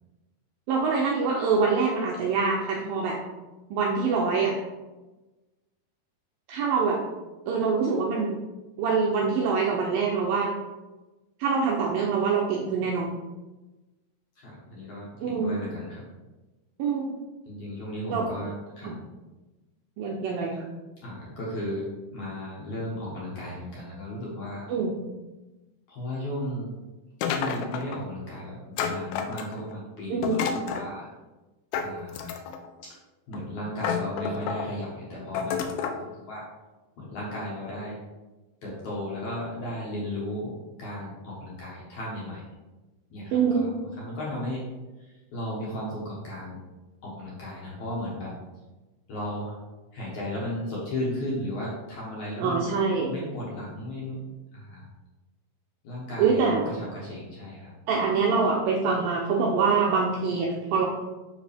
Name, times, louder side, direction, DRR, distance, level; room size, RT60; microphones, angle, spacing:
voice 1, 0.7-3.2 3.7-4.5 6.5-7.0 7.5-8.3 8.8-10.5 11.4-13.1 15.2-15.6 16.8-17.1 18.1-18.3 18.8-19.0 20.0-20.7 24.7-24.9 30.1-30.4 43.3-43.7 52.4-53.1 56.2-56.7 57.9-60.9, right 5 dB, 80° right, -2 dB, 2.1 m, -25 dB
voice 2, 14.4-16.0 17.5-18.9 21.0-24.7 25.9-26.7 27.2-31.1 31.8-32.4 33.3-36.4 37.0-38.0 38.6-42.4 43.1-44.6 45.0-46.6 47.0-48.4 49.1-49.6 49.9-52.7 53.1-54.2 54.5-54.9 55.8-57.7, left 1 dB, 60° left, -5 dB, 2.2 m, -35 dB
sound 1, 27.2-28.0 28.8-29.7 30.2-30.9 31.7-32.7 33.3-33.4 33.8-34.7 35.4-36.0, left 6 dB, 80° left, 2.7 m, -30 dB
7.3 x 6.2 x 3.4 m, 1.1 s
omnidirectional pair, 4.9 m